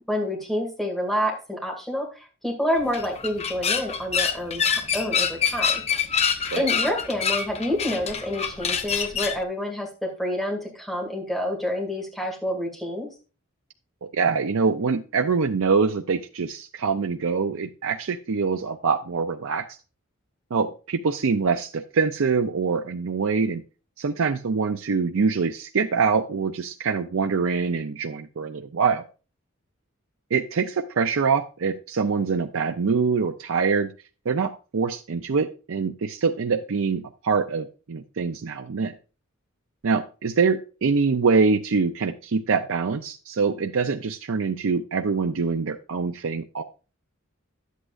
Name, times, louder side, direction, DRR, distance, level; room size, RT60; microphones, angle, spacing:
voice 1, 0.1-6.1 6.6-13.1, equal, ahead, 0 dB, 2.3 m, -28 dB
sound 1, 2.8-9.4, left 7 dB, 30° left, 0.7 m, -26 dB
voice 2, 14.0-19.7 20.5-23.6 24.0-29.0 30.3-33.9 34.3-38.9 39.8-46.6, right 5 dB, 70° right, 6 dB, 0.5 m, -24 dB
11.0 x 8.3 x 2.5 m, 0.33 s
head